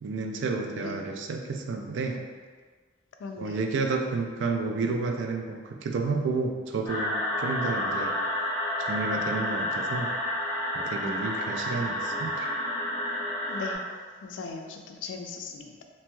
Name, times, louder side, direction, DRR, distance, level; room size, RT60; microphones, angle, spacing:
voice 1, 0.0-2.2 3.4-8.2 8.8-10.1 10.7-12.5, right 3 dB, 70° right, 3 dB, 0.3 m, -31 dB
voice 2, 3.2-3.7 11.0-11.3 13.5-13.8 14.2-15.8, left 4 dB, 70° left, 3 dB, 0.3 m, -38 dB
sound 1, 6.9-13.8, left 1 dB, 20° left, 1.0 m, -30 dB
3.0 x 2.7 x 2.2 m, 1.5 s
head